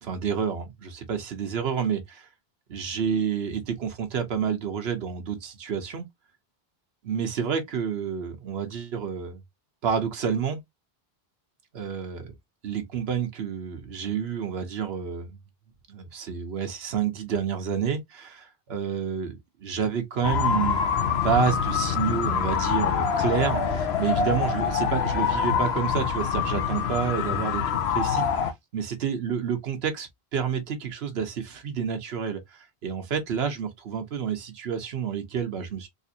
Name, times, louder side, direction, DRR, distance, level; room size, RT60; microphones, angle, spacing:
voice 1, 0.0-2.3 2.7-6.1 7.0-9.4 9.8-10.6 11.7-12.3 12.6-15.3 15.9-35.9, right 7 dB, 85° right, 1.1 m, -29 dB
sound 1, 20.2-28.5, left 7 dB, 90° left, 1.0 m, -25 dB
3.8 x 2.5 x 2.7 m
omnidirectional pair, 1.0 m